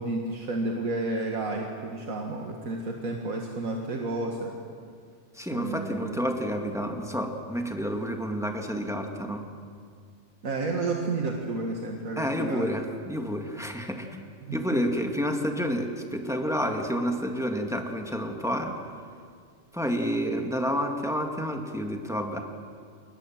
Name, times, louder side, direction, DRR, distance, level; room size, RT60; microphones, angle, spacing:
voice 1, 0.0-4.5 5.5-6.2 10.4-12.7 14.4-14.6, right 2 dB, 85° right, 1 dB, 2.2 m, -31 dB
voice 2, 5.3-9.4 12.2-14.2 14.5-18.8 19.7-22.4, equal, ahead, 3 dB, 2.1 m, -29 dB
27.5 x 21.5 x 7.5 m, 2.2 s
omnidirectional pair, 1.4 m